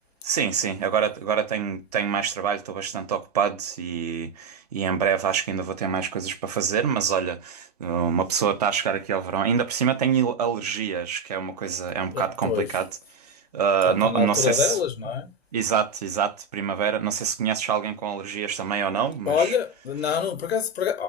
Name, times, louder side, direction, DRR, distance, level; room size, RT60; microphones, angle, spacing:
voice 1, 0.2-12.9 13.5-14.8 15.5-19.6 20.0-20.2, right 7 dB, 35° right, 0.5 m, -25 dB
voice 2, 12.1-12.7 13.8-15.3 19.3-21.0, left 8 dB, 65° left, 0.7 m, -26 dB
3.8 x 3.3 x 2.6 m
figure-of-eight pair, 130°, 35 cm